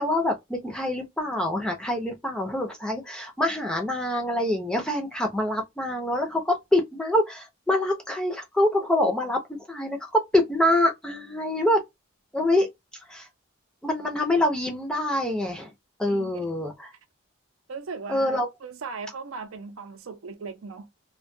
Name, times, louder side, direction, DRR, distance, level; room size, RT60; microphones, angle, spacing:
voice 1, 0.0-11.8 12.3-12.7 13.1-13.3 13.8-15.7 16.0-16.9 18.1-18.5, left 1 dB, 5° left, 0.5 m, -25 dB
voice 2, 16.1-16.4 17.7-20.9, right 4 dB, 75° right, 0.5 m, -38 dB
2.2 x 2.2 x 2.5 m
head